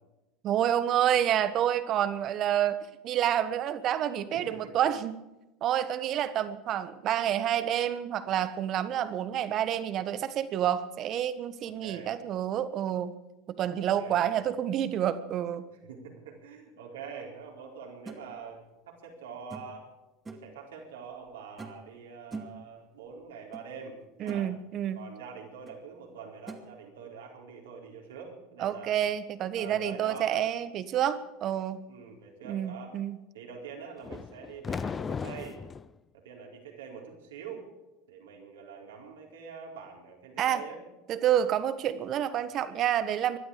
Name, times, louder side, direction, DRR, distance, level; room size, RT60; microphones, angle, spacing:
voice 1, 0.4-2.8 3.0-5.2 5.6-13.1 13.5-15.6 24.2-25.0 28.6-31.8 32.4-33.2 40.4-40.6 41.1-43.4, right 10 dB, 45° right, 13 dB, 1.3 m, -28 dB
voice 2, 4.3-4.8 11.6-12.1 13.8-14.3 15.7-19.9 20.3-24.5 24.9-29.0 29.5-30.5 31.9-32.9 33.3-35.6 36.1-37.6 38.1-40.8, right 6 dB, 80° right, 0 dB, 4.5 m, -44 dB
sound 1, 18.1-18.2 19.5-19.8 20.2-20.5 21.6-21.9 22.3-22.6 23.5-23.6 24.0-24.5 25.7-25.8 26.5-26.6, right 3 dB, 20° right, 2.3 m, -42 dB
sound 2, 34.0-35.9, left 6 dB, 25° left, 0.6 m, -36 dB
21.0 x 12.0 x 5.1 m, 0.98 s
hypercardioid pair, 85°, 0 cm